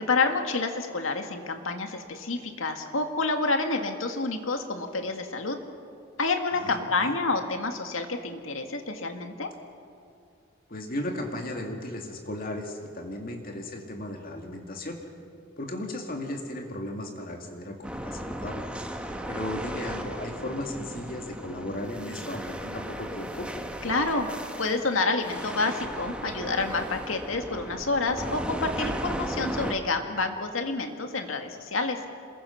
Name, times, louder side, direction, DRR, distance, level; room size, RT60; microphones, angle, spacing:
voice 1, 0.0-5.6 6.2-9.5 23.8-24.3 24.6-32.0, left 3 dB, 85° left, 5 dB, 2.1 m, -28 dB
voice 2, 6.5-7.1 10.7-15.0 15.6-18.6 19.3-23.5, left 1 dB, 45° left, 2 dB, 2.3 m, -36 dB
sound 1, 17.8-29.7, equal, 5° right, 1.4 m, -36 dB
27.5 x 21.5 x 5.9 m, 2.5 s
head